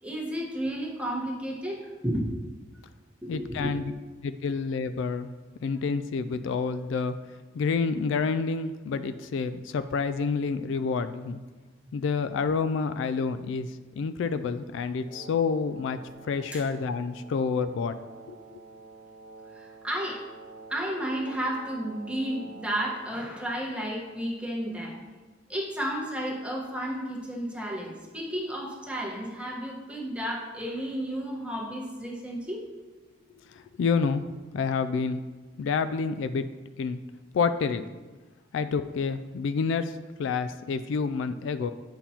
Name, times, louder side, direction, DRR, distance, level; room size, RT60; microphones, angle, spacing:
voice 1, 0.0-2.3 3.2-3.7 16.5-16.6 19.5-20.2 20.7-25.0 25.5-32.6, right 1 dB, 5° right, -3 dB, 1.3 m, -32 dB
voice 2, 3.3-3.9 4.2-5.3 5.6-7.2 7.5-11.4 11.9-16.0 16.3-17.9 18.3-18.6 33.5-34.2 34.5-35.2 35.6-36.4 36.8-37.0 37.3-37.8 38.5-41.7, left 5 dB, 70° left, 11 dB, 0.3 m, -28 dB
Wind instrument woodwind instrument, 15.0-23.3, right 3 dB, 50° left, 2.3 m, -48 dB
8.8 x 5.6 x 2.9 m, 1.3 s
head